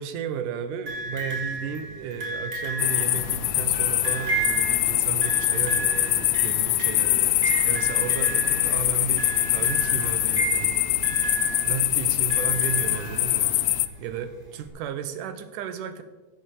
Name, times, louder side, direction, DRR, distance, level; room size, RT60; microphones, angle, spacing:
voice 1, 0.0-10.8 11.6-13.6 14.0-16.0, right 7 dB, 85° right, 10 dB, 2.5 m, -34 dB
sound 1, 0.9-13.7 14.7-14.8, right 3 dB, 25° right, 2.7 m, -33 dB
sound 2, 2.5-14.5, right 2 dB, 55° right, 1.2 m, -41 dB
sound 3, 2.8-13.9, left 16 dB, 85° left, 1.5 m, -24 dB
15.0 x 6.0 x 6.6 m, 1.2 s
omnidirectional pair, 3.6 m